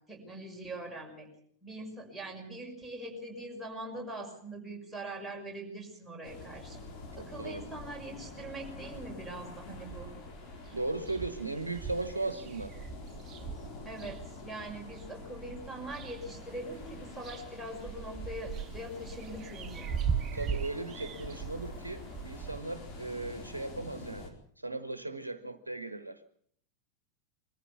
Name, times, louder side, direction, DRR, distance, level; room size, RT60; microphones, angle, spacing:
voice 1, 0.1-1.3 1.6-6.8 7.1-10.1 13.8-19.9, right 1 dB, ahead, -2 dB, 6.1 m, -42 dB
sound 1, 6.2-24.3, left 2 dB, 40° left, 4.5 m, -46 dB
voice 2, 7.2-7.6 10.7-12.7 20.3-26.2, right 2 dB, 80° right, 12 dB, 1.1 m, -37 dB
sound 2, 9.7-10.3 10.7-10.8 11.0-15.0 15.6-16.4 16.7-22.6, right 7 dB, 30° right, 0.9 m, -39 dB
22.5 x 14.5 x 8.3 m, 0.63 s
figure-of-eight pair, 90°, 0 cm